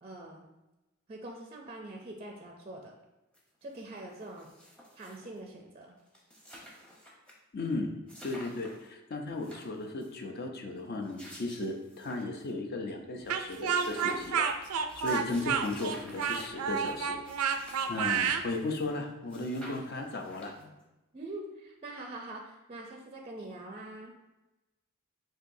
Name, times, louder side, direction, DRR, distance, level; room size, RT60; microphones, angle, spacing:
voice 1, 0.0-0.4 1.1-2.9 3.6-4.5 4.9-5.9 18.0-18.1 21.1-24.2, right 2 dB, 30° right, 1 dB, 0.4 m, -44 dB
sound 1, 3.3-3.4 3.7-5.4 5.8-5.9 6.1-7.3 7.6-7.7 8.1-8.9 9.3-10.2 10.8-12.5 12.9-13.0 13.2-19.0 19.3-20.8, equal, 5° left, 0.7 m, -51 dB
voice 2, 7.5-7.9 8.2-14.5 15.0-17.2 17.9-20.7, left 2 dB, 45° left, 3 dB, 0.6 m, -35 dB
Speech, 13.3-18.4, right 6 dB, 90° right, 0.4 m, -30 dB
7.6 x 2.7 x 2.6 m, 1.0 s
head